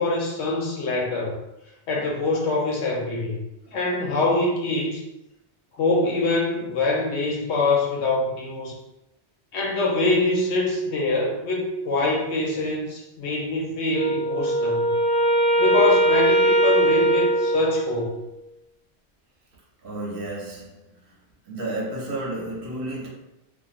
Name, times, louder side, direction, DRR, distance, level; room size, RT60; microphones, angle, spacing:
voice 1, 0.0-1.4 1.9-3.4 3.7-5.0 5.7-8.7 9.5-14.9 15.6-18.2, left 2 dB, 80° left, -1 dB, 0.9 m, -24 dB
Wind instrument woodwind instrument, 13.9-18.3, right 1 dB, 45° left, 1.3 m, -21 dB
voice 2, 19.8-20.8 21.5-23.1, right 1 dB, 60° right, -3 dB, 0.9 m, -31 dB
2.9 x 2.3 x 2.4 m, 0.91 s
omnidirectional pair, 1.1 m